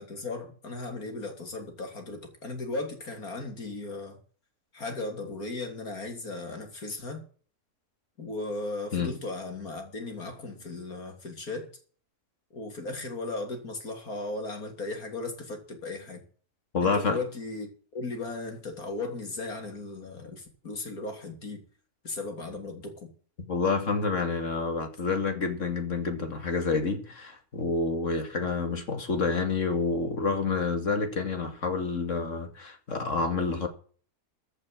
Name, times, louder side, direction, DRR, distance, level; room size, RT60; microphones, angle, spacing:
voice 1, 0.0-4.2 4.7-7.2 8.2-11.7 12.5-16.2 16.8-21.6 22.0-23.1, left 2 dB, 70° left, 3.5 m, -36 dB
voice 2, 16.7-17.2 23.5-33.7, left 4 dB, 55° left, 2.6 m, -28 dB
15.0 x 6.5 x 7.5 m
omnidirectional pair, 1.6 m